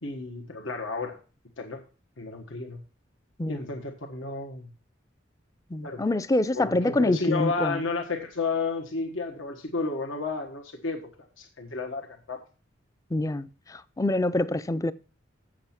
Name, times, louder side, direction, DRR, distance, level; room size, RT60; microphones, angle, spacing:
voice 1, 0.0-1.2 1.6-1.8 2.2-2.8 3.5-4.7 5.8-6.0 6.5-11.1 11.4-12.4, left 3 dB, 85° left, 1.3 m, -32 dB
voice 2, 5.7-7.8 13.1-14.9, left 2 dB, 15° left, 0.4 m, -26 dB
7.7 x 7.5 x 5.8 m
head